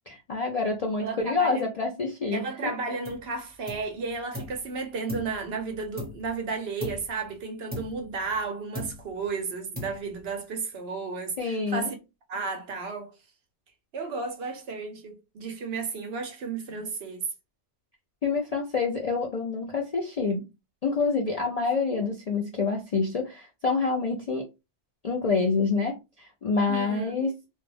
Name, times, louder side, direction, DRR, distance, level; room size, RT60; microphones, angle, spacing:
voice 1, 0.1-2.4 11.4-11.9 18.2-20.4 20.8-24.4 25.0-27.3, left 4 dB, 55° left, 0.4 m, -27 dB
voice 2, 1.0-1.7 2.3-12.0 12.3-13.1 13.9-17.3 26.7-27.3, right 4 dB, 65° right, 0.9 m, -33 dB
sound 1, 3.0-3.3 3.7-4.6 5.1-6.4 6.8-7.2 7.7-8.5 8.7-9.3 9.7-10.3, left 1 dB, 10° right, 1.1 m, -39 dB
2.4 x 2.1 x 3.2 m
omnidirectional pair, 1.2 m